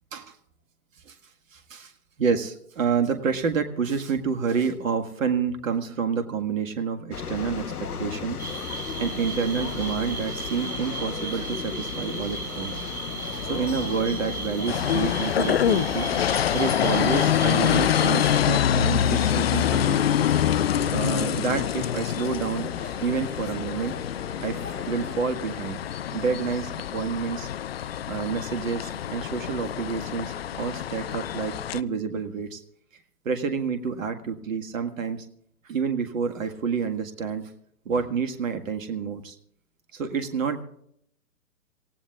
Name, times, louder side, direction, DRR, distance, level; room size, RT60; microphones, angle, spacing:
voice 1, 1.5-1.9 2.2-8.4 8.7-12.8 13.4-16.1 16.5-20.0 20.9-24.0 24.4-25.8 26.1-27.5 28.1-32.6 33.3-35.3 35.6-37.5 37.9-39.4 39.9-40.6, right 6 dB, 60° right, 7 dB, 1.7 m, -29 dB
sound 1, 7.1-25.2, left 6 dB, 80° left, 1.1 m, -33 dB
sound 2, 8.4-18.4, right 3 dB, 75° right, 4.8 m, -36 dB
sound 3, 14.7-31.8, left 10 dB, 45° left, 0.5 m, -26 dB
27.5 x 16.5 x 2.4 m, 0.71 s
figure-of-eight pair, 125°, 45 cm